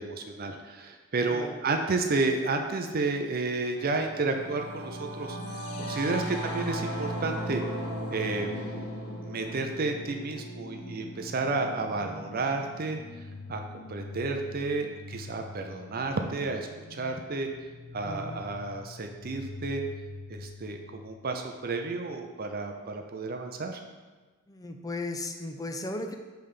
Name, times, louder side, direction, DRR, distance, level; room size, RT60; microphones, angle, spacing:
voice 1, 0.0-7.6 8.1-8.5 9.2-13.0 13.5-13.6 13.9-17.5 17.9-19.8 20.3-23.8, right 3 dB, 45° right, 4 dB, 0.5 m, -31 dB
Singing / Musical instrument, 3.7-13.2, right 1 dB, 55° left, 1.4 m, -37 dB
sound 1, 5.4-21.4, left 3 dB, 90° left, 0.6 m, -45 dB
voice 2, 18.0-18.4 24.5-26.2, left 2 dB, 15° left, 5 dB, 0.5 m, -36 dB
7.5 x 3.3 x 5.3 m, 1.3 s
head